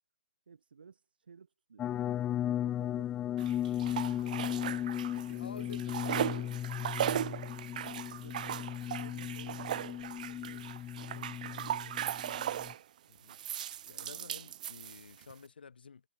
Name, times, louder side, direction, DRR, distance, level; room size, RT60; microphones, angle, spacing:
voice 1, 0.5-4.6 5.1-5.9 7.1-13.1, right 6 dB, 80° right, 3.9 m, -57 dB
sound 1, 1.8-12.7, left 11 dB, 15° left, 0.5 m, -36 dB
sound 2, 3.4-5.3 5.6-12.8 13.3-15.3, right 11 dB, 55° right, 0.8 m, -38 dB
voice 2, 3.8-4.6 5.2-6.6 8.3-8.5 13.1-13.4 13.9-16.0, left 5 dB, 85° left, 1.4 m, -51 dB
hypercardioid pair, 145°, 5 cm